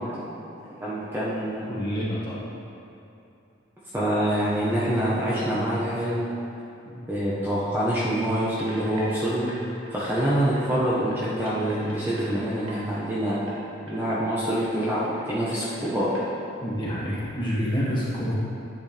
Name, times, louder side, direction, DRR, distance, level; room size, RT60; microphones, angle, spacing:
voice 1, 0.0-1.7 3.9-6.3 7.1-9.5 9.9-13.4 13.9-16.1, right 1 dB, 10° right, -9 dB, 1.2 m, -26 dB
voice 2, 1.7-2.4 6.8-7.0 16.6-18.3, equal, 20° left, -8 dB, 1.9 m, -28 dB
sound 1, 8.6-10.3 10.6-10.7 11.1-13.0 13.3-13.6 13.9-14.0 14.3-15.3 15.5-16.2, right 1 dB, 80° right, 1.9 m, -44 dB
10.5 x 8.4 x 3.5 m, 2.8 s
head